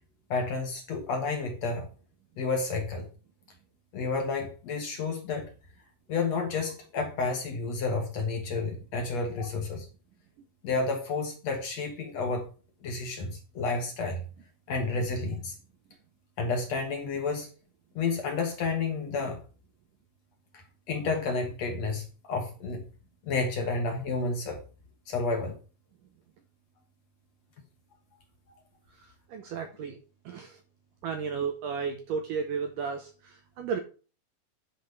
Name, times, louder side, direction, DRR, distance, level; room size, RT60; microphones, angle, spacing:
voice 1, 0.3-1.9 2.4-3.1 3.9-5.5 6.1-9.9 10.6-12.5 12.8-14.2 14.7-15.6 16.4-17.5 18.0-19.4 20.5-22.8 23.2-24.6 25.1-25.6 28.5-28.6, left 3 dB, 60° left, 1.9 m, -30 dB
voice 2, 29.3-30.0 30.3-30.6 31.0-33.8, right 6 dB, 75° right, 1.9 m, -33 dB
10.0 x 5.1 x 5.2 m
omnidirectional pair, 4.7 m